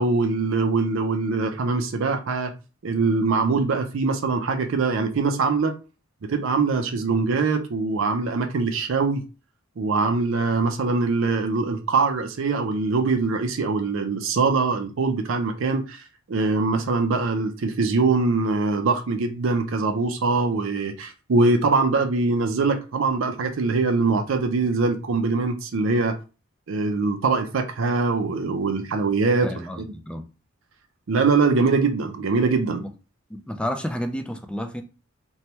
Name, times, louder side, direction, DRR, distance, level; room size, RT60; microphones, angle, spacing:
voice 1, 0.0-2.5 2.8-5.7 6.2-9.2 9.8-16.0 16.3-26.2 26.7-29.5 29.8-29.9 31.1-32.8, right 4 dB, 65° right, 0.5 m, -23 dB
voice 2, 29.4-30.3 32.8-32.9 33.3-34.8, equal, 5° left, 0.3 m, -31 dB
3.1 x 2.2 x 2.8 m
head